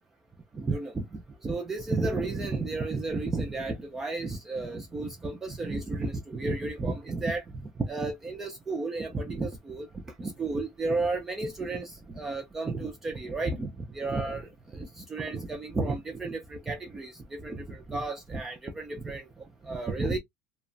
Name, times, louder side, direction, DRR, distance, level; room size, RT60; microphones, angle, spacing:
voice 1, 0.5-9.9 10.2-20.2, right 3 dB, 10° right, 0.3 m, -32 dB
2.7 x 2.1 x 2.5 m
cardioid pair, 175°, 3 cm